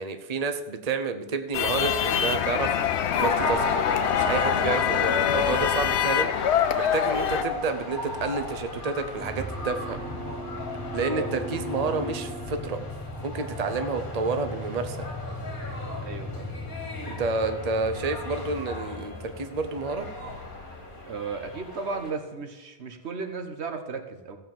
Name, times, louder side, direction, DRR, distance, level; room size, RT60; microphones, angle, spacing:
voice 1, 0.0-3.6 4.1-10.0 10.9-12.8 13.2-15.0 17.1-20.1, right 4 dB, 40° right, 8 dB, 0.9 m, -30 dB
sound 1, 1.5-7.4, left 9 dB, 85° left, 1.0 m, -25 dB
sound 2, 3.2-22.1, left 3 dB, 50° left, 2.0 m, -35 dB
sound 3, 9.2-21.4, left 1 dB, 5° left, 2.0 m, -38 dB
voice 2, 16.0-16.6 21.1-24.4, right 4 dB, 80° right, 6 dB, 1.5 m, -35 dB
15.0 x 5.4 x 7.4 m, 1.1 s
omnidirectional pair, 1.1 m